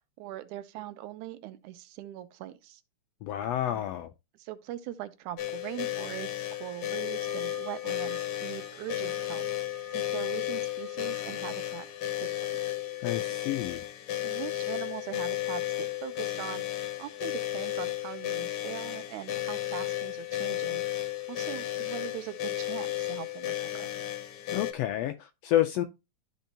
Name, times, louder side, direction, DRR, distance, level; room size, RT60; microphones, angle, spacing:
voice 1, 0.2-2.8 3.6-3.9 4.4-9.4 9.9-11.9 12.2-12.6 14.2-20.8 21.3-23.9, right 13 dB, 90° right, 2.1 m, -41 dB
voice 2, 3.2-4.1 13.0-13.9 24.5-25.8, left 12 dB, 80° left, 1.5 m, -29 dB
sound 1, 5.4-24.7, left 14 dB, 65° left, 1.6 m, -33 dB
sound 2, 6.9-13.4, right 4 dB, 45° right, 2.0 m, -51 dB
13.0 x 4.4 x 2.8 m
omnidirectional pair, 3.3 m